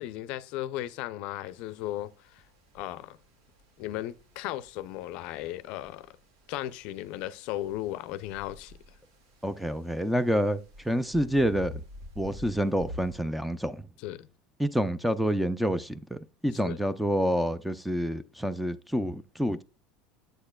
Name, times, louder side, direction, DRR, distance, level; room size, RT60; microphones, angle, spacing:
voice 1, 0.0-2.4 2.7-3.2 3.8-6.1 6.5-8.8 14.0-14.3 16.6-16.8, left 14 dB, 60° left, 0.4 m, -36 dB
sound 1, 1.5-13.1, left 1 dB, 85° right, 2.0 m, -49 dB
voice 2, 9.4-10.6 10.8-11.8 12.2-13.9 14.6-19.6, equal, ahead, 0.4 m, -28 dB
7.9 x 6.5 x 2.3 m
supercardioid pair, 140°, 2 cm